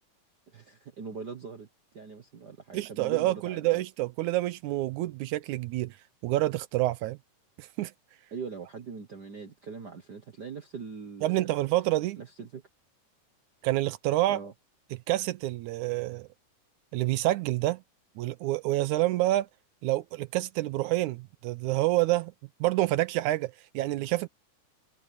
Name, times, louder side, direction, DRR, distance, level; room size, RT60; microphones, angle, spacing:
voice 1, 0.5-1.7 1.9-3.8 8.3-11.5 12.2-12.6 14.3-14.5, right 5 dB, 60° right, 1.1 m, -41 dB
voice 2, 2.7-5.9 6.2-7.2 7.6-7.9 11.2-12.2 13.6-14.4 15.1-16.3 16.9-17.8 18.2-19.5 19.8-22.3 22.6-24.3, right 17 dB, 80° right, 2.0 m, -28 dB
omnidirectional pair, 3.7 m